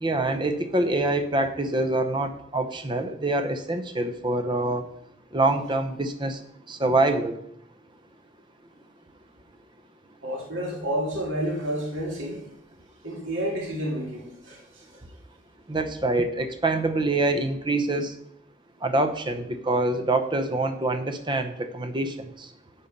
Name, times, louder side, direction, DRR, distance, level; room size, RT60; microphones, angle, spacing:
voice 1, 0.0-4.8 5.3-6.4 6.7-7.3 15.7-18.1 18.8-22.1, right 2 dB, 25° right, 8 dB, 0.7 m, -25 dB
voice 2, 10.2-12.4 13.0-15.0, equal, 70° right, -1 dB, 2.4 m, -30 dB
9.6 x 5.5 x 5.3 m, 0.74 s
head